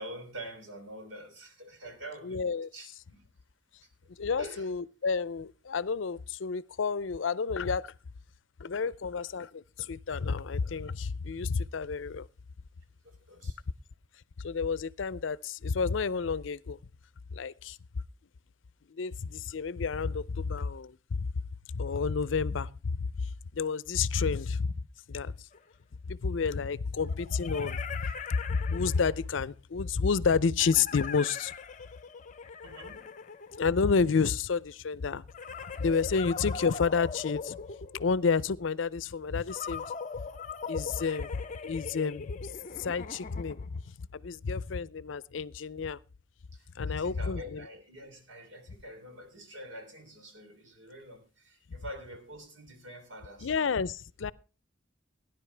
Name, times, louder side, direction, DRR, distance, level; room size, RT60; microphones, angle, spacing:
voice 1, 0.0-3.2 3.8-3.9 4.4-4.7 13.0-13.6 32.6-33.1 46.5-53.5, right 1 dB, 80° right, 3.4 m, -46 dB
voice 2, 2.2-2.7 4.2-7.9 8.6-12.3 14.4-16.8 17.3-17.8 18.9-21.3 21.7-24.7 25.1-25.5 26.1-31.5 33.6-35.2 35.8-37.6 37.9-39.8 40.7-41.3 41.6-42.5 42.8-43.8 44.1-46.0 46.8-47.6 53.4-54.3, left 5 dB, 80° left, 0.5 m, -30 dB
sound 1, 25.5-25.6 27.0-29.4 30.6-34.1 35.3-38.3 39.5-43.8, left 5 dB, 40° left, 0.7 m, -41 dB
17.5 x 10.5 x 3.3 m
head